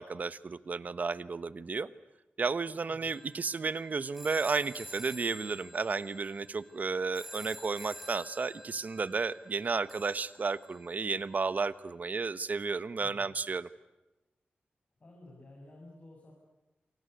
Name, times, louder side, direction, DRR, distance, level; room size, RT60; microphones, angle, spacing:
voice 1, 0.0-1.9 2.4-13.7, right 4 dB, 45° right, 16 dB, 1.1 m, -33 dB
voice 2, 2.9-3.2 13.0-13.4 15.0-16.3, left 2 dB, 40° left, -2 dB, 7.0 m, -53 dB
sound 1, 3.0-11.1, equal, 5° right, 4.3 m, -50 dB
28.5 x 25.5 x 8.1 m, 1.0 s
wide cardioid pair, 130°, 4 cm